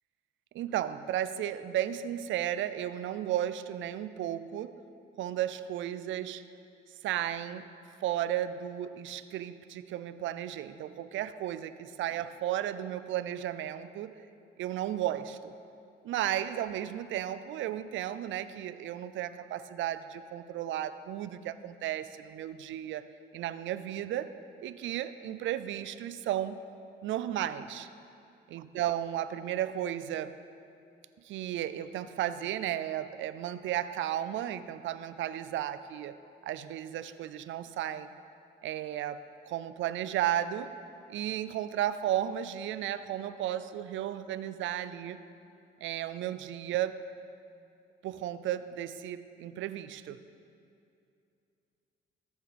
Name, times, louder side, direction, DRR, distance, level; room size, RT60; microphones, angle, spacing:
voice 1, 0.5-4.8 5.2-6.4 7.0-7.7 8.0-14.1 14.6-15.5 16.0-23.0 23.3-24.3 24.6-26.6 27.0-27.9 28.5-30.4 31.2-36.2 36.4-38.1 38.6-40.7 41.1-45.2 45.8-47.0 48.0-50.2, right 11 dB, 75° right, 13 dB, 0.4 m, -34 dB
14.0 x 7.1 x 4.2 m, 2.6 s
cardioid pair, 90°, 20 cm